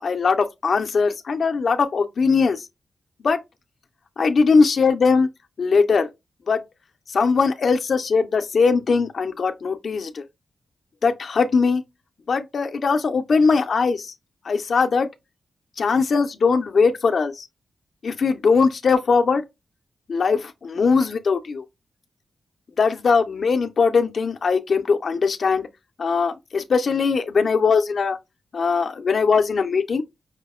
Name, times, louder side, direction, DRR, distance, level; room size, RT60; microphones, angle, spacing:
voice 1, 0.0-2.6 3.2-3.4 4.2-5.3 5.6-6.1 6.5-6.6 7.1-10.2 11.0-11.8 12.3-14.1 14.4-15.1 15.8-17.5 18.0-19.4 20.1-21.6 22.8-25.6 26.0-28.2 28.5-30.0, left 5 dB, 60° left, 0.4 m, -20 dB
4.9 x 2.0 x 2.3 m
cardioid pair, 90°, 0 cm